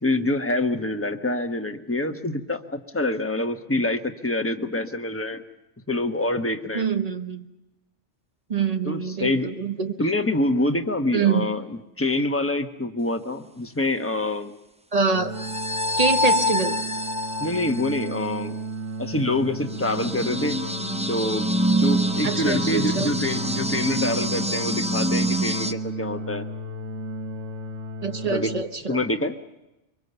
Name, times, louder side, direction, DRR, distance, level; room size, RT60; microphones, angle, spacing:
voice 1, 0.0-5.4 5.9-6.9 8.8-9.5 10.0-11.6 12.0-14.5 17.4-18.6 19.0-20.6 21.1-26.4 28.3-28.5 28.9-29.3, left 2 dB, 10° left, 6 dB, 1.1 m, -26 dB
voice 2, 6.7-7.4 8.5-9.9 11.1-11.5 14.9-15.3 16.0-16.8 22.2-23.1 28.0-29.0, right 5 dB, 35° right, 8 dB, 1.3 m, -25 dB
sound 1, 15.1-28.6, right 2 dB, 80° right, 1.8 m, -34 dB
sound 2, 15.3-18.5 19.7-25.7, equal, 10° right, 0.5 m, -26 dB
24.0 x 24.0 x 6.9 m, 0.94 s
omnidirectional pair, 1.2 m